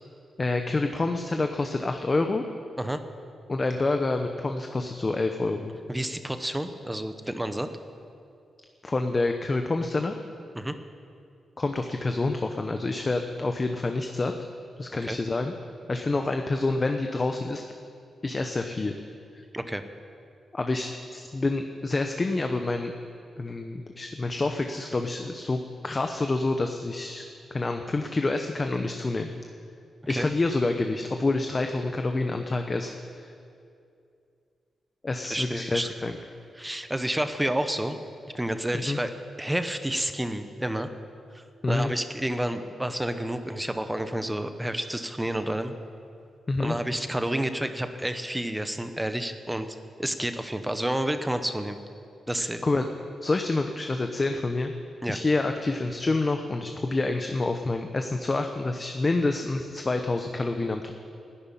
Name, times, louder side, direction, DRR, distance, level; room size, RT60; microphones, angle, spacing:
voice 1, 0.4-2.4 3.5-5.8 8.8-10.1 11.6-14.3 14.8-15.5 15.9-17.6 18.2-18.9 20.5-22.9 23.4-27.2 27.5-29.3 30.1-33.3 35.0-36.2 38.7-39.0 41.6-41.9 46.5-46.8 52.4-52.9 53.2-54.7 55.1-60.9, left 2 dB, 30° left, 5 dB, 0.8 m, -27 dB
voice 2, 5.9-7.7 10.5-10.7 15.0-15.2 19.5-19.8 30.1-30.3 35.3-35.9 36.6-38.0 38.3-39.1 39.4-40.9 41.3-45.7 46.6-51.8 52.3-52.6 55.0-55.2, right 1 dB, 10° right, 9 dB, 0.8 m, -30 dB
12.5 x 11.5 x 9.9 m, 2.5 s
wide cardioid pair, 115°, 0 cm